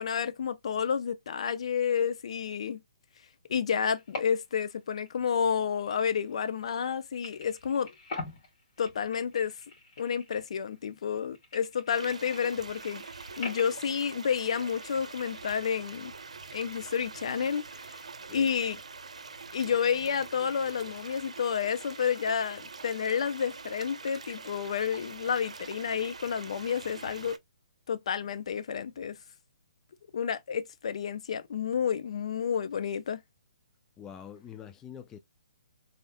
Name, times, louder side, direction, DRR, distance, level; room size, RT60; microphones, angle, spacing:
voice 1, 0.0-2.8 3.5-7.9 8.8-9.5 10.0-13.0 13.4-16.1 16.5-18.0 18.3-18.8 19.5-27.4 27.9-29.2 30.1-33.2, left 7 dB, 60° left, 0.7 m, -30 dB
sound 1, 3.9-4.7 5.0-6.9 7.2-10.8 11.1-15.4, left 3 dB, 40° left, 2.6 m, -45 dB
sound 2, 11.9-27.4, right 4 dB, 85° right, 0.7 m, -45 dB
voice 2, 34.0-35.2, left 8 dB, 15° left, 0.4 m, -45 dB
3.8 x 3.6 x 2.2 m
hypercardioid pair, 145°, 4 cm